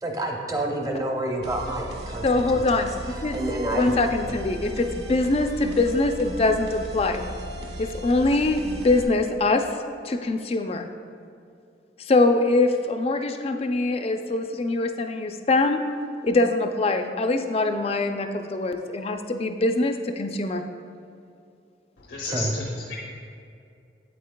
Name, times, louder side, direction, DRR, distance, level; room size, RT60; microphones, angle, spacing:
voice 1, 0.0-2.9 3.3-4.0 22.2-22.6, right 1 dB, 20° right, 1 dB, 0.7 m, -29 dB
sound 1, 1.4-9.0, right 1 dB, 60° right, 0.7 m, -36 dB
voice 2, 2.2-3.4 3.7-7.3 7.8-9.7 10.0-10.9 12.0-15.8 16.2-20.6, left 2 dB, 35° left, 7 dB, 0.4 m, -23 dB
voice 3, 22.1-23.0, left 3 dB, 85° left, -3 dB, 0.7 m, -32 dB
8.4 x 8.4 x 2.2 m, 2.4 s
head